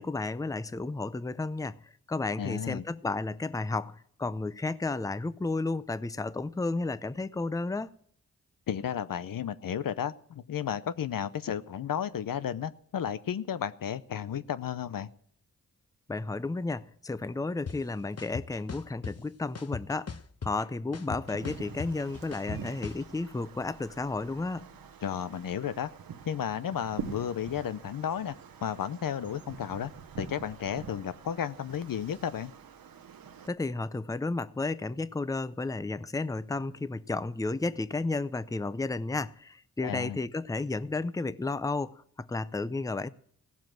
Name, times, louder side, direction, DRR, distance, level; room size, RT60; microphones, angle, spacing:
voice 1, 0.0-1.8 2.1-7.9 16.1-20.1 20.4-24.7 33.5-43.1, left 3 dB, 10° left, 0.6 m, -32 dB
voice 2, 2.4-2.8 8.7-15.1 25.0-25.9 26.2-28.3 28.6-29.9 30.2-32.5 39.8-40.2, left 9 dB, 75° left, 0.7 m, -33 dB
sound 1, 17.7-17.8 18.2-19.1 19.5-20.6 20.9-23.0, left 5 dB, 45° left, 1.0 m, -38 dB
Wind, 21.1-33.5, right 7 dB, 90° right, 1.1 m, -45 dB
16.5 x 7.3 x 7.6 m
cardioid pair, 55°, 34 cm